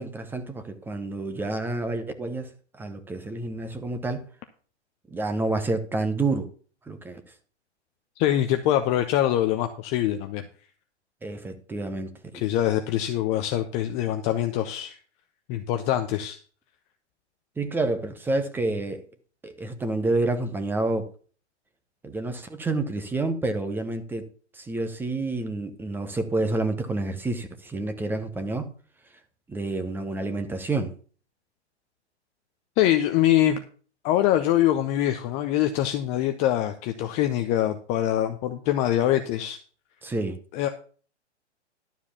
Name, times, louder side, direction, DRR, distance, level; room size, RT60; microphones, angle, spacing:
voice 1, 0.0-2.5 2.8-4.2 5.1-6.5 6.9-7.2 11.2-12.4 17.6-19.0 19.4-21.1 22.0-24.3 24.5-28.7 29.5-30.9 40.0-40.4, right 2 dB, 5° right, 0.8 m, -29 dB
voice 2, 8.2-10.4 12.3-15.0 15.5-16.4 32.8-33.6 34.0-39.6 40.5-40.7, left 12 dB, 20° left, 0.5 m, -24 dB
11.5 x 4.8 x 7.2 m
hypercardioid pair, 130°, 35 cm